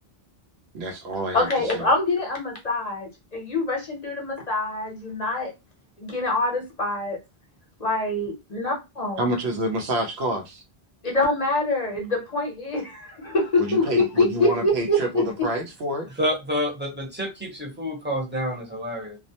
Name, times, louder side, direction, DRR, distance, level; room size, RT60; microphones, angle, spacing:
voice 1, 0.7-1.9 9.2-10.6 13.6-16.1, right 1 dB, 90° right, 0.9 m, -28 dB
voice 2, 1.3-5.5 6.0-7.2 7.8-9.2 11.0-15.2, left 2 dB, 45° left, 0.8 m, -25 dB
voice 3, 16.2-19.2, equal, 10° right, 0.7 m, -28 dB
2.4 x 2.1 x 2.7 m
omnidirectional pair, 1.0 m